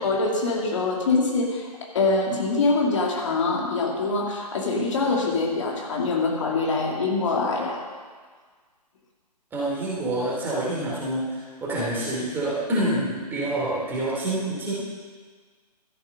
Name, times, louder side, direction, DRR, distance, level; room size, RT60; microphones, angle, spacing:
voice 1, 0.0-7.8, left 3 dB, 50° left, -1 dB, 2.3 m, -24 dB
voice 2, 9.5-14.7, right 1 dB, 10° right, -6 dB, 2.7 m, -27 dB
13.5 x 7.4 x 5.4 m, 1.5 s
figure-of-eight pair, 140°, 21 cm